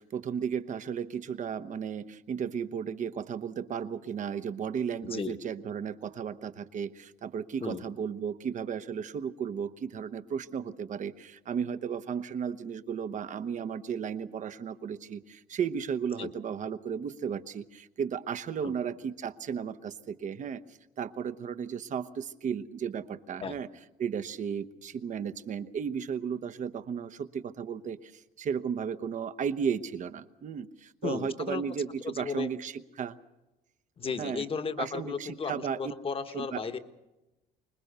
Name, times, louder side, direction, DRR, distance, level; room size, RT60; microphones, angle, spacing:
voice 1, 0.1-2.0 2.3-6.9 7.2-11.1 11.5-15.2 15.5-17.6 18.0-19.7 20.2-20.6 21.0-22.0 22.4-23.0 23.3-23.7 24.0-24.7 25.0-27.1 27.6-28.0 28.5-30.6 31.0-31.9 32.2-32.7 33.0-33.1 34.2-34.4 34.8-35.8 36.3-36.6, right 7 dB, 45° right, 12 dB, 1.0 m, -34 dB
voice 2, 5.0-5.4 7.6-7.9 16.2-16.3 18.6-18.7 23.4-23.6 31.0-31.6 32.0-32.5 34.0-36.8, left 5 dB, 35° left, 9 dB, 1.3 m, -35 dB
25.5 x 20.5 x 6.8 m, 1.0 s
cardioid pair, 110°, 17 cm